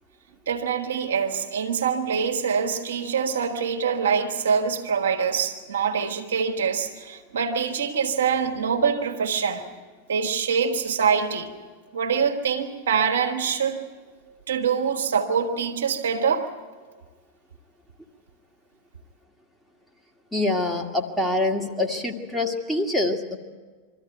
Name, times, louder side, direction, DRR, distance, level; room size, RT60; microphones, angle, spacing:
voice 1, 0.5-9.7 10.1-11.5 11.9-13.8 14.5-16.5, right 6 dB, 65° right, 1.6 m, -24 dB
voice 2, 20.3-23.4, left 2 dB, ahead, 1.8 m, -25 dB
23.0 x 14.0 x 9.2 m
figure-of-eight pair, 90°, 0 cm